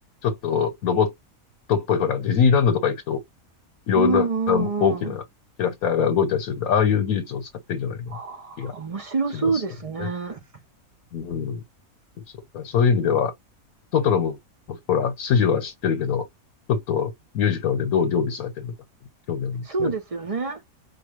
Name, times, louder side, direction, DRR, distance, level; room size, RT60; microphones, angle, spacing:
voice 1, 0.2-1.1 1.7-3.2 3.9-5.2 5.6-8.1 8.6-8.7 9.3-9.6 10.0-10.1 11.1-11.6 12.5-13.3 13.9-14.4 14.7-16.2 16.7-18.7 19.3-19.9, left 7 dB, 75° left, 1.3 m, -23 dB
voice 2, 3.9-5.2 8.1-10.4 19.7-20.6, right 4 dB, 45° right, 0.4 m, -27 dB
4.7 x 2.2 x 3.1 m
omnidirectional pair, 1.5 m